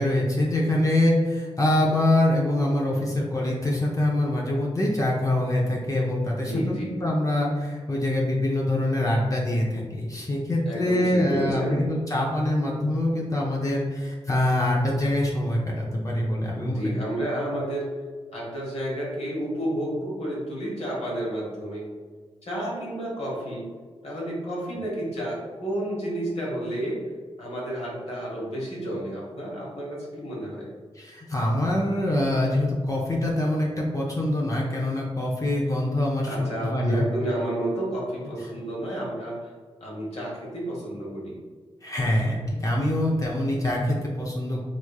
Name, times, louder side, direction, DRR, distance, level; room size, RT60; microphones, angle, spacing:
voice 1, 0.0-16.9 31.0-37.0 38.4-38.5 41.8-44.7, left 1 dB, 30° left, -3 dB, 0.6 m, -24 dB
voice 2, 6.3-7.0 10.7-11.8 16.6-18.0 18.3-21.8 22.4-23.7 24.0-27.1 27.4-30.7 36.2-39.4 39.8-41.4, right 1 dB, 75° left, -5 dB, 1.2 m, -31 dB
3.3 x 3.1 x 2.3 m, 1.5 s
cardioid pair, 60°, 11 cm